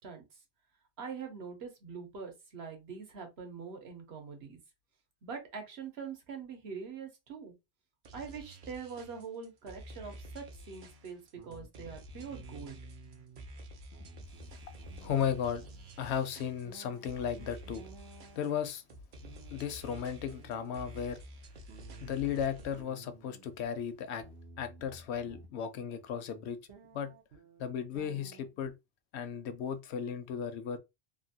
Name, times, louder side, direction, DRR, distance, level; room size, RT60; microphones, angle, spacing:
voice 1, 1.0-4.6 5.2-7.5 8.1-12.8, right 6 dB, 70° right, 1.1 m, -44 dB
sound 1, 8.0-22.8, equal, 55° right, 0.7 m, -50 dB
sound 2, 10.5-10.8 11.4-13.5 13.8-16.1 16.7-18.6 19.2-21.1 21.7-23.7 24.2-25.5 26.1-26.2 26.7-28.7, right 4 dB, 90° right, 1.0 m, -54 dB
voice 2, 15.0-15.7 16.0-17.8 18.4-18.8 19.5-21.2 22.0-24.2 24.6-26.6 26.9-27.1 27.6-28.7 29.1-30.8, left 8 dB, 80° left, 0.8 m, -35 dB
2.9 x 2.5 x 2.7 m
omnidirectional pair, 1.1 m